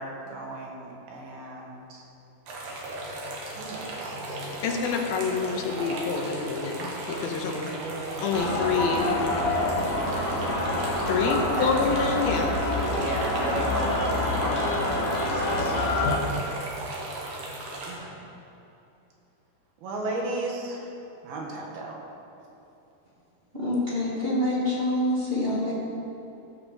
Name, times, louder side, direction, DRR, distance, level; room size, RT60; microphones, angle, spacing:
voice 1, 0.0-2.1 3.4-4.6 7.8-8.5 11.2-11.7 13.0-14.8 15.2-15.8 17.9-18.3 19.8-20.9 21.2-22.0, right 2 dB, 85° right, -1 dB, 3.6 m, -35 dB
sound 1, 2.5-17.9, right 2 dB, 65° right, 3.0 m, -36 dB
voice 2, 4.6-7.7 8.2-9.1 11.1-12.5, left 5 dB, 90° left, 2 dB, 2.9 m, -27 dB
sound 2, 8.3-16.2, left 2 dB, 45° left, 1.8 m, -27 dB
voice 3, 23.5-25.7, left 1 dB, 20° right, -6 dB, 1.8 m, -26 dB
15.5 x 6.2 x 6.7 m, 2.9 s
omnidirectional pair, 4.2 m